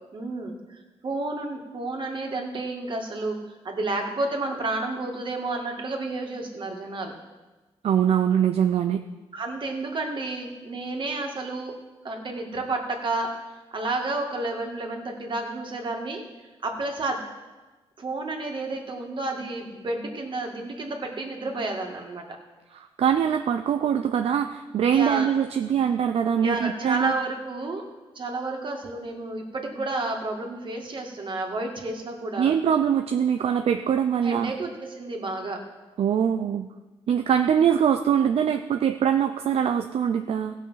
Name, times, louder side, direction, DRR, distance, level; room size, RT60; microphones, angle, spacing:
voice 1, 0.1-0.6 1.0-7.2 9.3-11.8 12.0-13.4 13.7-16.2 16.6-17.2 18.0-22.3 24.9-25.3 26.4-27.8 28.2-32.6 34.2-35.6, right 2 dB, 50° right, 2 dB, 2.1 m, -31 dB
voice 2, 7.8-9.0 22.7-27.1 32.4-34.5 36.0-36.7 37.1-40.5, right 8 dB, 70° right, 6 dB, 0.5 m, -23 dB
16.0 x 6.2 x 5.7 m, 1.2 s
cardioid pair, 85°, 10 cm